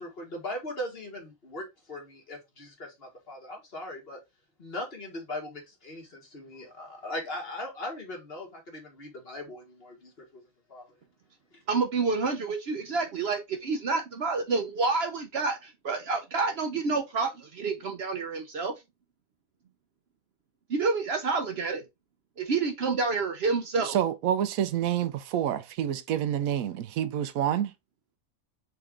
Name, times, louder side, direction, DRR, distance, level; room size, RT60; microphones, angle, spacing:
voice 1, 0.0-4.2 4.6-10.4 10.7-10.9, left 1 dB, 45° left, 1.7 m, -39 dB
voice 2, 11.7-18.7 20.7-21.8 22.4-24.0, right 4 dB, 60° right, 0.8 m, -28 dB
voice 3, 23.8-27.7, right 10 dB, 85° right, 1.0 m, -28 dB
3.9 x 3.4 x 3.7 m
omnidirectional pair, 1.4 m